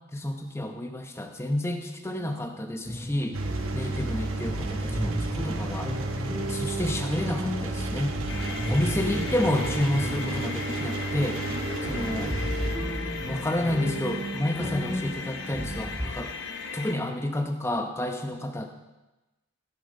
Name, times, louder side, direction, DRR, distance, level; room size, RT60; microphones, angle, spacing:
voice 1, 0.1-3.4 3.7-5.9 6.5-8.2 8.7-11.4 11.9-12.3 13.3-16.3 16.7-18.7, left 1 dB, 10° left, 5 dB, 0.8 m, -30 dB
voice 2, 2.0-2.6 3.3-4.0 8.3-9.1 11.5-12.2 16.0-16.4, right 1 dB, 45° right, -2 dB, 1.8 m, -45 dB
sound 1, 2.8-3.8 4.1-4.2 4.4-16.1, equal, 15° right, 1.5 m, -34 dB
Engine, 3.3-12.7, right 2 dB, 80° right, 1.1 m, -32 dB
sound 2, 8.3-17.0, left 5 dB, 60° left, 1.0 m, -37 dB
15.0 x 6.8 x 5.3 m, 1.1 s
head